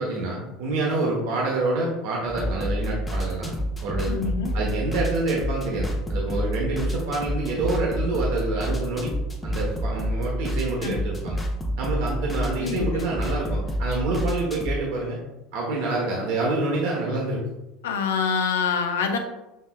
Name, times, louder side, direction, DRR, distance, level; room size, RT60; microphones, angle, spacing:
voice 1, 0.0-3.5 3.8-4.2 4.5-9.1 9.4-11.4 11.8-15.2 15.5-17.4, right 2 dB, 70° right, -3 dB, 0.9 m, -27 dB
sound 1, 2.3-14.8, equal, 20° left, 0.8 m, -29 dB
voice 2, 4.1-4.5 10.8-10.9 12.6-13.1 17.8-19.2, left 6 dB, 85° left, 6 dB, 0.5 m, -25 dB
6.2 x 3.3 x 2.2 m, 0.96 s
hypercardioid pair, 85°, 0 cm